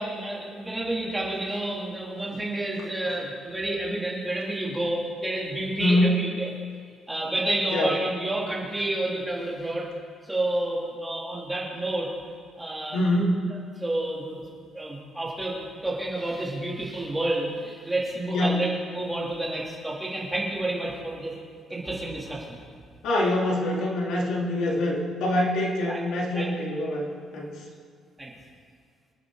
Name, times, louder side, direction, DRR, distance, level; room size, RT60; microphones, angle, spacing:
voice 1, 0.0-6.5 7.1-9.9 10.3-12.1 12.6-13.0 13.8-14.4 14.7-18.7 18.9-21.3 21.7-22.6 25.9-26.0 26.3-26.7 28.2-28.3, right 1 dB, 10° right, -5 dB, 2.8 m, -29 dB
voice 2, 5.8-6.1 7.7-7.9 12.9-13.5 18.3-18.6 23.0-27.1 27.3-27.5, left 1 dB, 80° left, -2 dB, 2.9 m, -24 dB
26.5 x 9.4 x 3.8 m, 2.1 s
cardioid pair, 180°, 0 cm